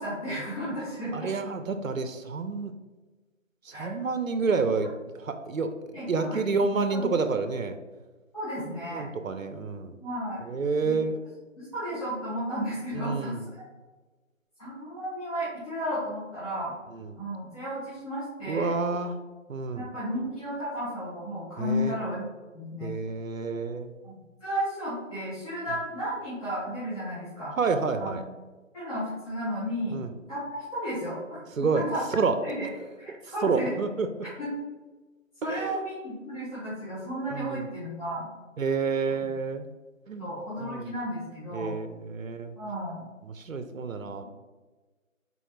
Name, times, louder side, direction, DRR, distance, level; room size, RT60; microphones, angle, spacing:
voice 1, 0.0-1.3 3.7-3.9 5.9-6.4 6.9-7.1 8.3-9.0 10.0-10.4 10.8-11.0 11.6-13.4 14.6-16.7 17.2-18.8 19.7-22.3 22.5-22.9 24.0-27.5 28.0-28.2 28.7-30.0 30.3-31.2 31.7-32.0 32.4-32.7 33.0-33.7 34.4-34.5 35.4-38.3 40.2-41.7 42.6-43.0, equal, 25° left, -13 dB, 1.2 m, -33 dB
voice 2, 1.1-2.7 3.6-5.7 6.1-7.8 8.9-10.0 10.5-11.2 12.9-13.4 16.9-17.2 18.5-19.2 19.5-19.9 21.6-22.0 22.8-23.9 27.6-28.2 29.9-30.1 31.6-31.8 32.1-32.4 33.2-34.1 35.4-35.8 37.3-37.7 38.6-39.7 40.1-40.3 40.6-40.9 41.5-42.5 43.2-44.2, right 4 dB, 80° right, 9 dB, 0.5 m, -29 dB
4.3 x 4.1 x 2.4 m, 1.2 s
figure-of-eight pair, 160°, 40 cm